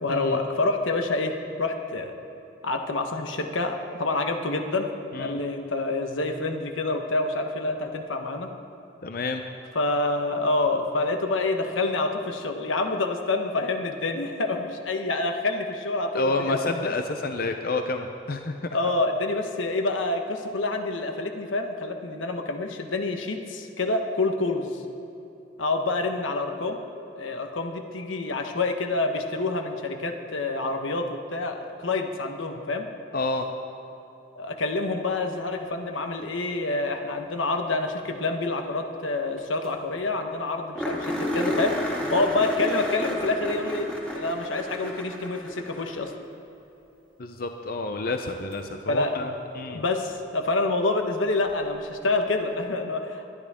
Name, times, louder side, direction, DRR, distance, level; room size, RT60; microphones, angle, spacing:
voice 1, 0.0-2.1 2.6-4.9 5.2-8.5 9.7-16.9 18.7-24.8 25.6-26.8 27.1-32.9 34.3-46.1 48.9-49.1 49.7-53.3, left 2 dB, 90° left, 5 dB, 1.2 m, -27 dB
voice 2, 9.0-9.4 16.1-18.5 33.1-33.5 47.2-49.8, left 2 dB, 50° left, 5 dB, 0.6 m, -29 dB
sound 1, 39.4-39.5 39.6-39.7 40.1-40.2 40.7-46.2 48.5-48.6 51.5-51.6, equal, 5° left, 2.0 m, -31 dB
21.0 x 11.5 x 3.7 m, 3.0 s
head